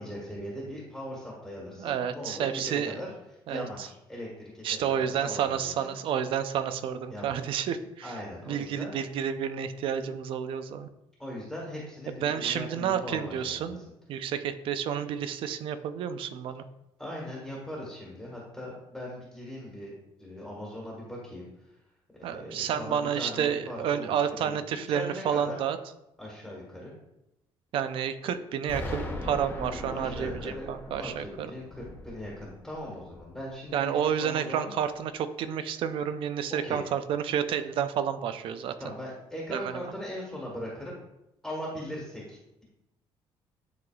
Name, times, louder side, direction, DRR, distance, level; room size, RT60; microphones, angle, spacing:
voice 1, 0.0-3.1 3.5-5.9 7.1-7.4 8.0-8.9 11.2-13.8 17.0-21.8 22.2-24.6 24.9-25.6 26.2-26.9 29.9-34.7 36.5-36.8 38.8-40.9 41.4-42.6, left 1 dB, 5° left, -5 dB, 1.4 m, -40 dB
voice 2, 1.8-3.0 3.5-3.6 4.6-8.1 8.5-10.9 12.2-13.8 14.1-16.6 22.2-25.8 27.7-31.5 33.7-38.8 39.5-39.7, right 8 dB, 60° right, 11 dB, 0.5 m, -30 dB
Explosion, 28.7-33.5, left 1 dB, 20° left, 1.0 m, -39 dB
10.5 x 3.9 x 2.3 m, 0.88 s
cardioid pair, 145°, 10 cm